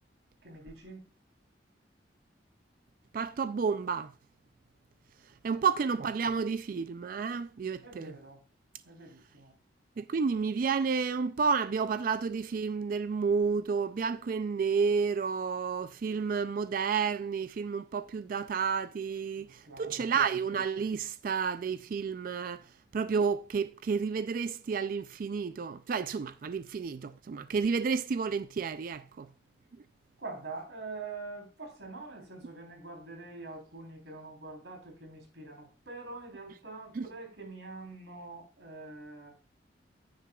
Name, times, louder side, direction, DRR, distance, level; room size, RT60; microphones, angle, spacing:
voice 1, 0.4-1.0 5.4-5.6 7.8-8.4 8.9-9.5 19.4-20.1 30.2-39.3, right 3 dB, 85° right, 3.5 m, -45 dB
voice 2, 3.1-4.1 5.4-8.1 10.0-22.6 22.9-29.3 37.0-37.1, right 5 dB, 50° right, 0.3 m, -31 dB
10.5 x 9.4 x 2.3 m
head